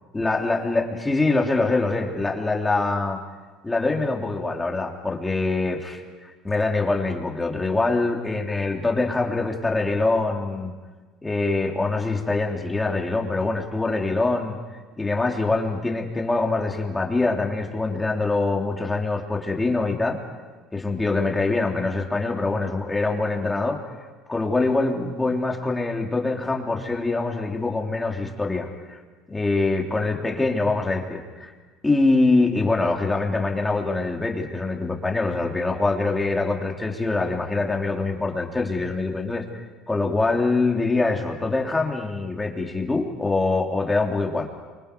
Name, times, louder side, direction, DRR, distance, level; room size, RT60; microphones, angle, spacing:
voice 1, 0.1-3.2 3.6-10.7 11.2-14.6 15.0-20.2 20.7-23.8 24.3-29.0 29.3-31.5 31.8-44.5, left 3 dB, 10° left, 0 dB, 3.3 m, -24 dB
29.0 x 25.5 x 5.4 m, 1.3 s
supercardioid pair, 110°, 0 cm